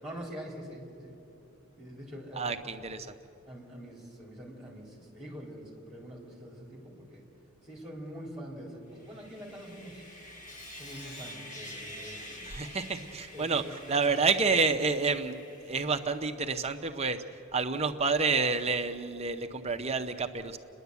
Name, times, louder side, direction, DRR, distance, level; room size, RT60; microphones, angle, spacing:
voice 1, 0.0-1.1 1.8-2.6 3.5-7.2 7.6-10.0 10.8-12.5 13.3-14.2, equal, 5° right, -2 dB, 3.8 m, -44 dB
voice 2, 2.3-3.1 12.4-15.3 15.7-17.2 17.5-20.6, right 4 dB, 30° right, 7 dB, 0.7 m, -29 dB
Sawing, 8.9-16.4, left 1 dB, 35° left, 2.0 m, -47 dB
29.5 x 11.0 x 8.2 m, 2.8 s
head